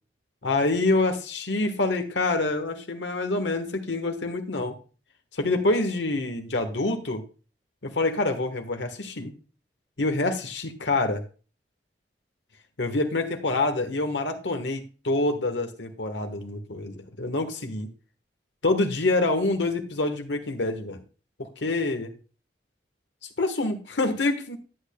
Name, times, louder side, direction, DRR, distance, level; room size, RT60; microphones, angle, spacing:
voice 1, 0.4-4.8 5.4-7.2 7.8-9.3 10.0-11.2 12.8-17.9 18.6-21.0 21.4-22.1 23.4-24.6, left 2 dB, 85° left, 6 dB, 1.3 m, -26 dB
11.0 x 8.4 x 2.2 m, 0.35 s
head